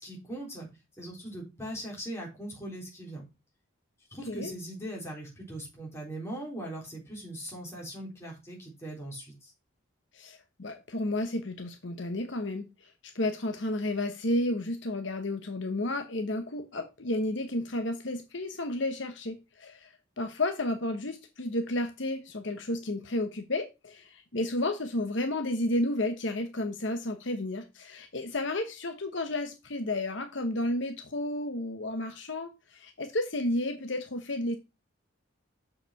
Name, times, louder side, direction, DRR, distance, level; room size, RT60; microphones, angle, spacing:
voice 1, 0.0-0.7 1.0-3.2 4.1-9.5, right 1 dB, 15° left, -3 dB, 3.8 m, -40 dB
voice 2, 10.1-12.9 13.1-34.5, left 1 dB, 60° left, 6 dB, 1.0 m, -32 dB
6.7 x 5.5 x 5.7 m, 0.26 s
head